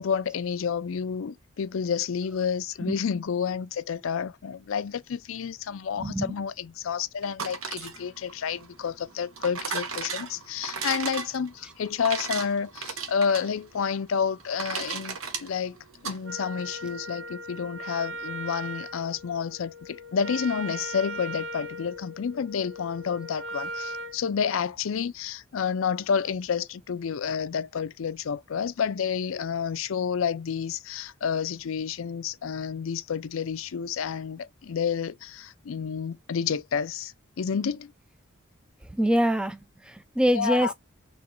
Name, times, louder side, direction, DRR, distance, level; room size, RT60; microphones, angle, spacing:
voice 1, 0.0-15.7 16.0-37.9 40.3-40.7, left 6 dB, 75° left, 0.4 m, -30 dB
voice 2, 6.0-6.3 38.9-39.6 39.8-40.7, equal, 5° right, 0.4 m, -24 dB
sound 1, 7.2-16.2, right 5 dB, 85° right, 1.0 m, -36 dB
Wind instrument woodwind instrument, 16.2-24.2, right 1 dB, 65° right, 0.6 m, -38 dB
4.3 x 3.1 x 2.5 m
head